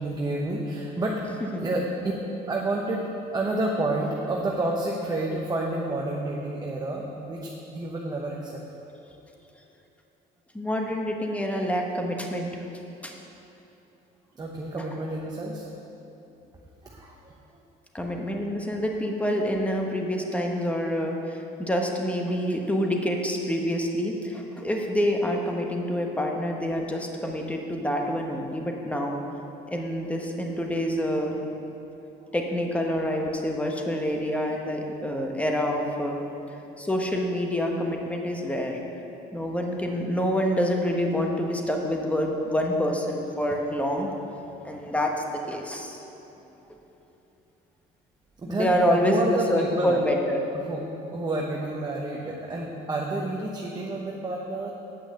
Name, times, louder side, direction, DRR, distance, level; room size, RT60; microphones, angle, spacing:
voice 1, 0.0-2.1 2.5-3.1 3.3-8.6 14.4-15.7 16.8-17.3 48.4-50.0 50.5-54.7, right 2 dB, 25° right, -2 dB, 1.0 m, -30 dB
voice 2, 10.5-12.5 13.0-13.2 17.9-29.2 29.7-31.3 32.3-36.2 36.8-38.8 39.3-44.1 44.6-45.1 45.5-46.0 48.5-50.4, equal, 10° left, 1 dB, 1.2 m, -27 dB
8.6 x 6.0 x 7.8 m, 3.0 s
cardioid pair, 110°, 17 cm